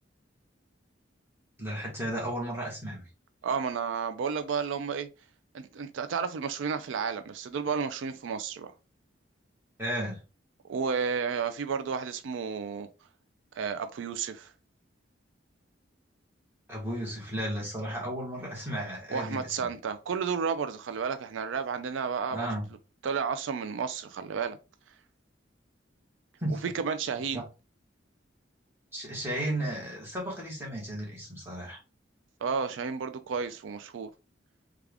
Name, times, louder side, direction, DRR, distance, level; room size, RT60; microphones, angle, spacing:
voice 1, 1.6-3.0 9.8-10.2 16.7-19.7 22.3-22.7 26.4-26.6 27.3-27.4 28.9-31.8, right 1 dB, 10° right, 1.4 m, -34 dB
voice 2, 3.4-5.1 5.5-8.7 10.7-12.9 13.5-14.5 19.1-22.5 23.0-24.6 26.6-27.4 32.4-34.1, right 6 dB, 85° right, 0.4 m, -32 dB
3.5 x 2.3 x 3.4 m
head